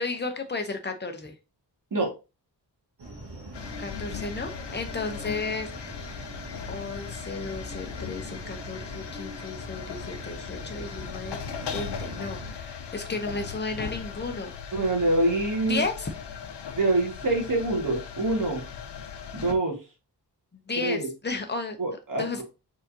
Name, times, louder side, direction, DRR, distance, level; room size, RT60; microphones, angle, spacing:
voice 1, 0.0-1.3 3.8-6.2 6.7-11.4 11.7-14.5 15.7-16.1 20.7-21.8 22.2-22.4, left 3 dB, 25° left, 6 dB, 0.8 m, -33 dB
sound 1, 3.0-12.5, right 2 dB, 75° right, 1.8 m, -42 dB
sound 2, 3.5-19.5, left 7 dB, 75° left, 0.7 m, -38 dB
voice 2, 14.7-15.8 16.8-18.6 19.3-19.8 20.8-21.1 21.8-22.4, right 2 dB, 50° right, 1 dB, 1.8 m, -25 dB
4.8 x 3.9 x 2.8 m, 0.28 s
wide cardioid pair, 160°, 42 cm